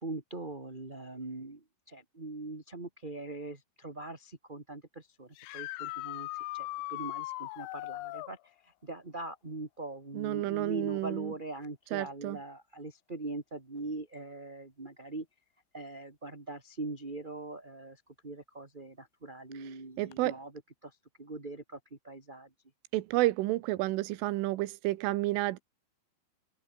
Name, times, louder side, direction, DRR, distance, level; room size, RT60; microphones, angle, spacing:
voice 1, 0.0-6.3 6.5-8.4 8.6-15.2 15.7-20.5 20.8-22.5, right 2 dB, 15° right, 1.7 m, -42 dB
sound 1, 5.4-8.3 11.7-11.8 13.8-13.9 20.1-20.2, left 20 dB, 90° left, 3.2 m, -39 dB
voice 2, 10.1-11.3 11.9-12.4 20.0-20.4 22.9-25.6, right 18 dB, 85° right, 3.6 m, -30 dB
omnidirectional pair, 5.5 m